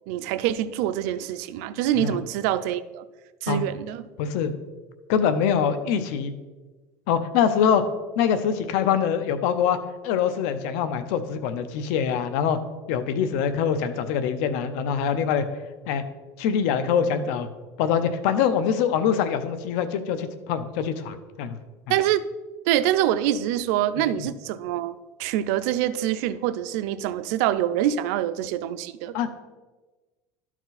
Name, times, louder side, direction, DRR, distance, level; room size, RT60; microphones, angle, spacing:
voice 1, 0.1-3.0 3.4-4.1 21.9-22.3 22.7-29.1, right 11 dB, 80° right, 14 dB, 0.5 m, -25 dB
voice 2, 4.2-4.5 5.1-6.3 7.1-7.8 8.2-9.8 10.0-12.6 12.9-15.5 15.9-16.0 16.4-17.5 17.8-21.6 24.2-24.3 29.1-29.4, left 7 dB, 80° left, 11 dB, 0.8 m, -24 dB
12.0 x 4.6 x 4.0 m, 1.2 s
cardioid pair, 125°, 8 cm